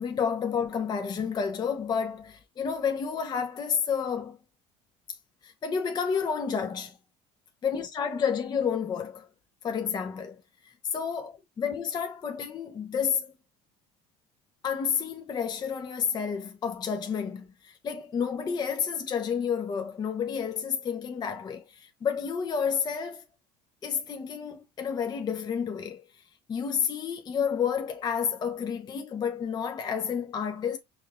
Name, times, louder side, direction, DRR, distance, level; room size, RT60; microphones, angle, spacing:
voice 1, 0.0-4.4 5.4-7.0 7.6-9.3 9.6-13.3 14.6-23.2 23.8-26.2 26.5-30.8, left 7 dB, 30° left, 0.6 m, -30 dB
5.1 x 2.4 x 2.2 m
supercardioid pair, 115°, 15 cm